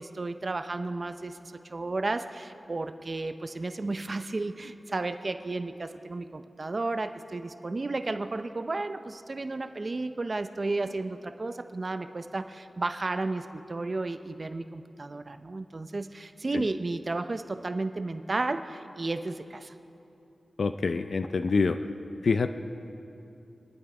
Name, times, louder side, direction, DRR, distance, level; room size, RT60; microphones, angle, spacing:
voice 1, 0.0-19.7, right 2 dB, 35° right, 9 dB, 0.5 m, -33 dB
voice 2, 20.6-21.8 22.2-22.5, left 4 dB, 60° left, 8 dB, 0.4 m, -26 dB
26.0 x 10.5 x 4.9 m, 2.9 s
wide cardioid pair, 130°, 0 cm